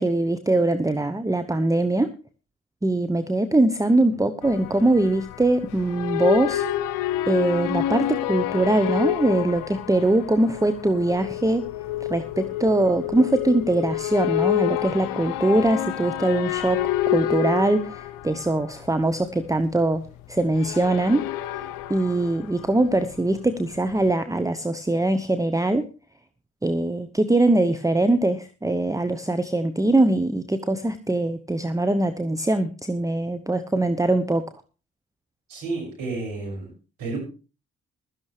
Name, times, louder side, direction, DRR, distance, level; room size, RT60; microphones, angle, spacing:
voice 1, 0.0-2.1 2.8-6.6 7.3-11.6 12.1-16.8 17.1-20.0 20.3-21.2 21.5-25.8 26.6-34.4, right 2 dB, 10° right, 11 dB, 0.9 m, -22 dB
sound 1, 4.4-23.4 23.6-24.1, left 13 dB, 75° left, 0.7 m, -28 dB
voice 2, 35.5-36.7 37.0-37.2, right 3 dB, 75° right, 0 dB, 6.4 m, -31 dB
16.0 x 12.5 x 3.3 m, 0.33 s
hypercardioid pair, 40°, 33 cm